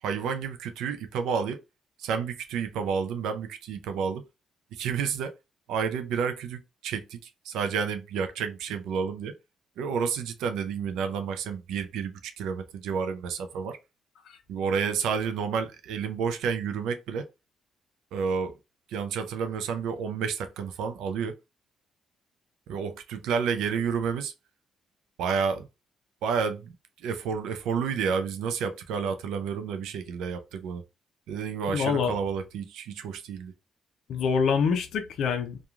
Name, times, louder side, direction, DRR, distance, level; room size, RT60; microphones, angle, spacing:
voice 1, 0.0-1.6 2.0-4.2 4.7-5.3 5.7-9.3 9.8-13.8 14.5-17.3 18.1-18.5 18.9-21.4 22.7-24.3 25.2-25.7 26.2-30.8 31.3-33.5, right 6 dB, 85° right, 0.4 m, -30 dB
voice 2, 31.7-32.1 34.1-35.6, left 6 dB, 75° left, 0.5 m, -26 dB
3.0 x 2.3 x 2.4 m
cardioid pair, 90°, 0 cm